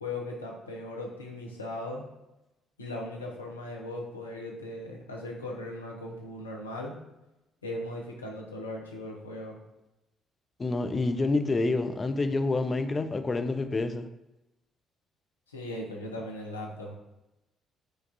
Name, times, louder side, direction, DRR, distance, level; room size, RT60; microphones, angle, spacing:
voice 1, 0.0-2.0 2.8-7.0 7.6-9.6 15.5-17.0, left 1 dB, 90° left, -1 dB, 0.5 m, -38 dB
voice 2, 10.6-14.1, left 3 dB, 30° left, 8 dB, 0.4 m, -28 dB
4.6 x 2.4 x 2.6 m, 0.95 s
figure-of-eight pair, 45°, 0 cm